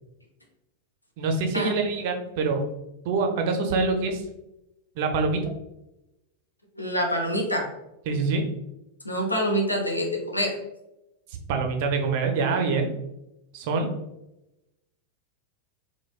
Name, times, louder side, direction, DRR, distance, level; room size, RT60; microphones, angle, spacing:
voice 1, 1.2-2.6 3.0-4.2 5.0-5.4 8.1-8.4 11.5-12.9 13.5-13.9, right 4 dB, 50° right, 4 dB, 0.5 m, -25 dB
voice 2, 6.8-7.7 9.0-10.5, equal, 85° left, 0 dB, 0.6 m, -26 dB
4.0 x 2.2 x 2.3 m, 0.91 s
figure-of-eight pair, 90°, 0 cm